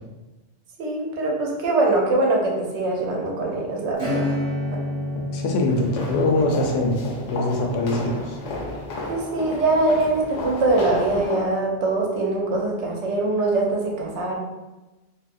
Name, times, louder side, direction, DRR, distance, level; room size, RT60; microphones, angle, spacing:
voice 1, 0.8-4.3 9.1-14.4, right 2 dB, 70° right, -1 dB, 0.9 m, -23 dB
Acoustic guitar / Strum, 3.9-10.2, left 1 dB, 30° right, 0.9 m, -31 dB
voice 2, 5.3-7.0 7.3-8.4, left 2 dB, 65° left, 1 dB, 0.7 m, -23 dB
sound 1, 5.7-11.4, left 2 dB, 85° left, 1.0 m, -33 dB
2.7 x 2.4 x 2.5 m, 1.1 s
omnidirectional pair, 1.3 m